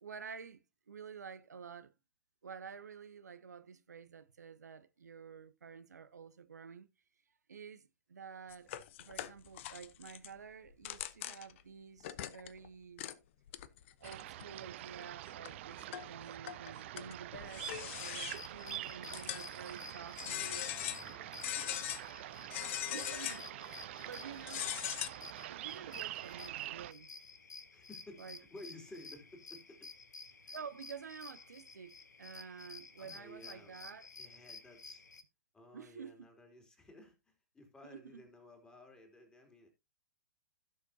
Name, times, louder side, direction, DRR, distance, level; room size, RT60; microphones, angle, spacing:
voice 1, 0.0-1.9 2.4-6.9 7.5-8.7 9.0-13.1 14.0-20.7 22.9-23.5 23.7-24.7 25.5-27.1 28.2-28.4 30.5-34.1 35.7-36.3 37.8-38.2, right 6 dB, 70° right, 0.9 m, -50 dB
sound 1, 8.5-10.3 10.7-11.6 12.0-12.7 13.0-13.1 13.5-14.5 15.0-15.1 15.4-16.1 16.5-18.6 19.1-19.7 20.2-21.1 21.4-22.0 22.5-23.5 24.4-25.1, left 13 dB, 45° left, 0.8 m, -41 dB
sound 2, 14.0-26.9, right 15 dB, 45° right, 0.5 m, -46 dB
sound 3, 17.6-35.2, left 4 dB, 75° left, 1.5 m, -53 dB
voice 2, 20.4-23.0 23.9-24.6 27.7-29.9 30.4-30.6 33.0-33.8 34.2-35.0 35.5-39.7, left 1 dB, 10° left, 3.1 m, -56 dB
16.0 x 6.7 x 2.7 m
figure-of-eight pair, 115°, 9 cm